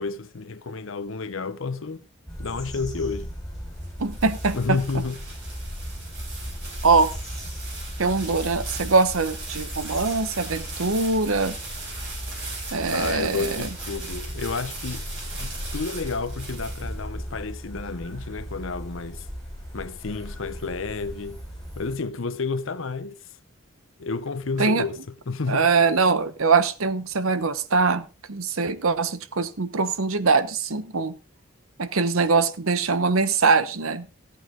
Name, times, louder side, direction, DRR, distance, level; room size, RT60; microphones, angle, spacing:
voice 1, 0.0-2.0 2.4-3.3 4.5-5.2 12.9-15.0 15.4-19.3 19.7-21.4 21.7-23.2 24.0-25.0 25.3-25.7, left 4 dB, 70° left, 0.8 m, -30 dB
sound 1, 2.3-21.9, equal, ahead, 5.4 m, -37 dB
sound 2, 3.7-17.3, right 3 dB, 55° right, 7.4 m, -39 dB
voice 2, 4.0-4.8 6.8-7.1 8.0-11.6 12.7-13.7 24.6-24.8 25.5-31.1 31.8-34.1, right 4 dB, 80° right, 1.0 m, -22 dB
14.5 x 8.5 x 3.8 m
head